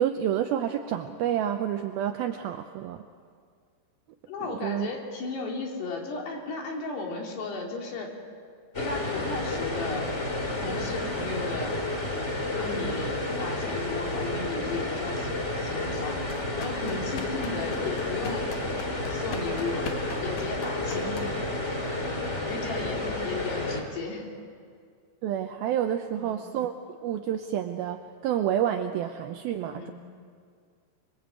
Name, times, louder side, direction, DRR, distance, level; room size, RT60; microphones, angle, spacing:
voice 1, 0.0-3.0 4.4-4.9 25.2-26.8 27.0-29.9, right 10 dB, 75° right, 6 dB, 2.4 m, -29 dB
voice 2, 4.3-8.1 8.8-10.1 10.6-11.7 12.6-16.2 16.6-18.6 19.1-19.9 20.2-21.3 22.5-24.3 26.2-26.4 29.7-29.9, left 3 dB, 75° left, 0 dB, 5.3 m, -35 dB
sound 1, 8.7-23.8, left 2 dB, 20° left, 2.1 m, -31 dB
sound 2, 16.2-21.6, left 5 dB, 55° left, 2.8 m, -40 dB
24.5 x 23.0 x 8.2 m, 2.1 s
omnidirectional pair, 4.9 m